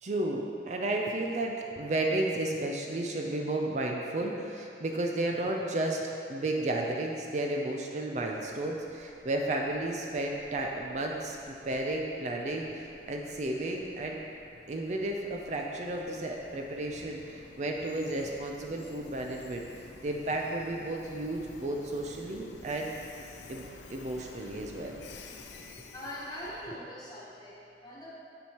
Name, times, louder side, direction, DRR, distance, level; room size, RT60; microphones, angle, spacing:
voice 1, 0.0-14.2 14.7-19.6 20.0-22.9 23.5-25.0, right 2 dB, 40° right, 1 dB, 0.4 m, -33 dB
Train, 8.1-26.7, left 3 dB, 80° left, 0.5 m, -52 dB
voice 2, 25.9-28.1, equal, 20° left, -6 dB, 1.3 m, -42 dB
7.5 x 7.1 x 2.9 m, 2.6 s
head